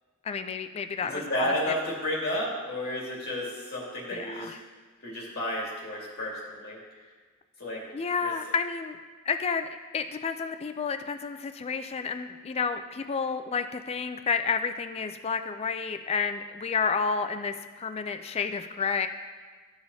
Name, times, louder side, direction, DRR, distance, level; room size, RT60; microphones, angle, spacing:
voice 1, 0.2-1.5 4.1-4.6 7.9-9.0 9.3-9.7 9.9-19.1, left 5 dB, 30° left, 8 dB, 0.3 m, -30 dB
voice 2, 1.1-4.5 5.0-6.8 7.6-7.9 8.2-8.3, left 1 dB, 50° left, -5 dB, 2.3 m, -32 dB
13.0 x 4.9 x 2.7 m, 1.5 s
head